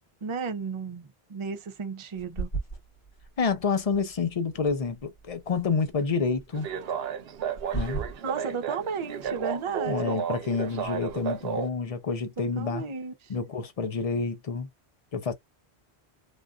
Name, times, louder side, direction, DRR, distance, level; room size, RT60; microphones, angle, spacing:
voice 1, 0.2-2.5 7.7-10.2 12.6-13.1, right 5 dB, 35° right, 0.5 m, -34 dB
sound 1, 2.1-12.4, right 4 dB, 80° left, 1.9 m, -41 dB
voice 2, 3.4-6.7 7.7-8.0 9.8-12.9 13.3-14.7 15.1-15.3, left 5 dB, 40° left, 0.6 m, -28 dB
sound 2, 6.5-11.7, right 8 dB, 70° right, 0.8 m, -33 dB
3.3 x 2.4 x 2.4 m
omnidirectional pair, 1.1 m